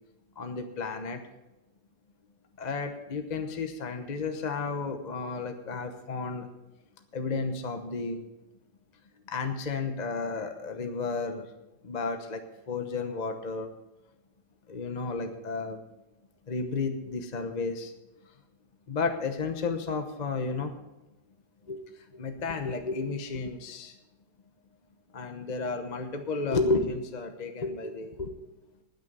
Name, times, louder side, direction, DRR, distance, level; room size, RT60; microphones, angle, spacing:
voice 1, 0.4-1.2 2.6-6.5 7.1-8.2 9.3-11.5 11.8-12.4 12.7-13.7 14.7-15.8 16.5-17.9 18.9-20.7 21.7-21.8 22.1-24.0 25.1-28.3, left 4 dB, 35° left, 5 dB, 0.7 m, -32 dB
20.0 x 6.7 x 5.4 m, 1.0 s
omnidirectional pair, 2.2 m